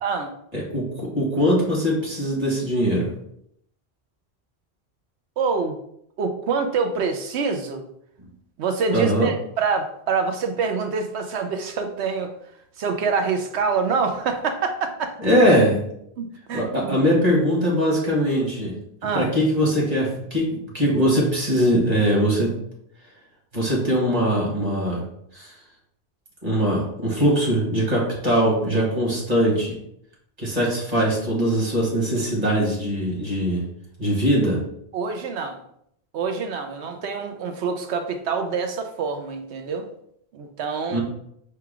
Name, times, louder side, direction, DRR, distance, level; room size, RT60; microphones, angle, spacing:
voice 1, 0.0-0.3 5.4-5.8 6.2-7.8 8.6-12.3 12.8-15.2 16.2-17.0 19.0-19.3 34.9-35.6 36.1-39.8 40.3-41.0, right 5 dB, 90° right, 6 dB, 0.9 m, -26 dB
voice 2, 0.5-3.1 8.9-9.3 15.2-15.8 16.5-18.7 19.1-22.5 23.5-25.0 25.3-25.5 26.4-29.8 30.4-33.6 34.0-34.6 40.9-41.0, equal, 40° right, -3 dB, 1.7 m, -21 dB
4.7 x 2.3 x 4.8 m, 0.72 s
omnidirectional pair, 1.1 m